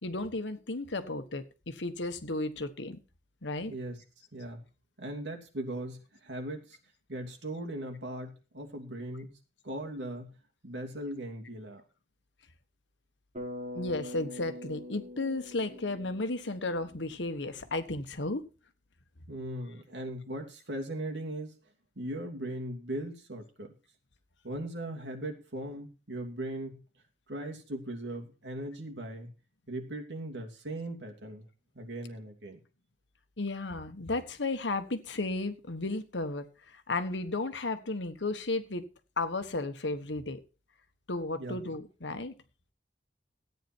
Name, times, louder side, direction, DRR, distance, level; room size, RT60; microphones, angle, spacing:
voice 1, 0.0-3.0 3.4-3.7 13.7-18.4 33.4-38.8 39.2-40.4 41.1-42.3, left 2 dB, 85° left, 9 dB, 1.4 m, -34 dB
voice 2, 3.7-4.0 4.3-4.6 5.0-6.8 7.1-9.4 9.6-10.3 10.6-11.8 19.3-21.6 22.0-23.7 24.4-26.8 27.3-29.3 29.7-31.4 31.7-32.6 41.4-41.6, right 1 dB, 80° right, 2 dB, 2.8 m, -39 dB
Bass guitar, 13.3-17.5, left 1 dB, 40° right, 5.9 m, -44 dB
14.0 x 9.3 x 4.5 m, 0.34 s
head